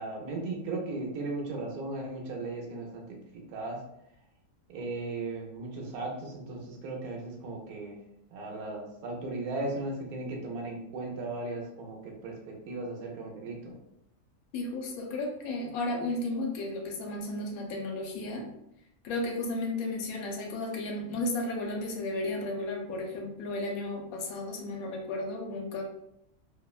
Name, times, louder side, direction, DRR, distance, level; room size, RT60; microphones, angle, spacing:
voice 1, 0.0-3.1 3.5-3.8 4.7-8.0 8.3-13.8, right 2 dB, 90° right, 0 dB, 1.1 m, -36 dB
voice 2, 14.5-18.5 19.0-25.8, left 2 dB, 80° left, 1 dB, 1.0 m, -34 dB
2.8 x 2.1 x 2.3 m, 0.79 s
omnidirectional pair, 1.5 m